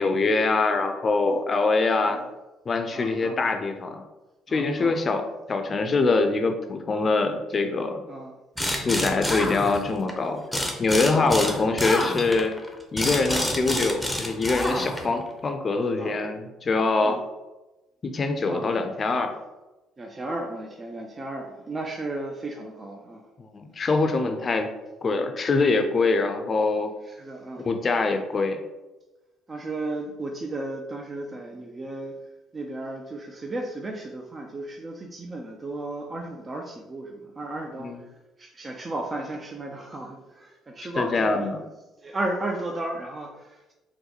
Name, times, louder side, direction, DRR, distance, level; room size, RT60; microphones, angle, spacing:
voice 1, 0.0-2.2 2.7-4.0 4.5-8.0 8.8-10.4 10.8-12.5 12.9-17.2 18.0-19.3 23.5-24.7 25.0-26.9 27.7-28.6 37.8-38.0 41.0-41.6, left 3 dB, 40° left, 6 dB, 0.5 m, -24 dB
voice 2, 2.9-3.4 4.5-5.0 8.1-8.3 9.0-9.3 11.1-11.4 13.3-13.5 14.7-14.9 16.0-16.2 17.0-17.2 18.5-18.7 20.0-23.3 24.3-24.5 27.0-27.7 29.5-32.2 32.5-38.1 38.4-41.5 42.0-43.7, right 2 dB, 30° right, 2 dB, 0.4 m, -34 dB
sound 1, 8.6-10.1 10.5-15.2, equal, 5° left, 0.7 m, -28 dB
3.9 x 2.2 x 2.9 m, 1.1 s
hypercardioid pair, 55°, 0 cm